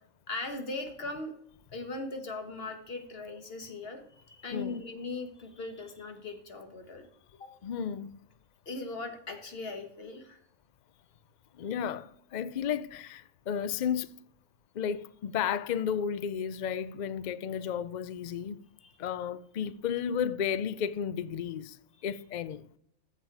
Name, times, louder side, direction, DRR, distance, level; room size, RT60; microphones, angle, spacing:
voice 1, 0.3-1.3 1.7-7.1 7.4-7.5 8.6-10.4 18.8-18.9, left 3 dB, 45° left, 1.7 m, -39 dB
voice 2, 7.6-8.1 11.5-14.1 14.7-18.6 19.0-22.8, left 8 dB, 90° left, 0.4 m, -33 dB
14.5 x 6.7 x 4.7 m
omnidirectional pair, 1.4 m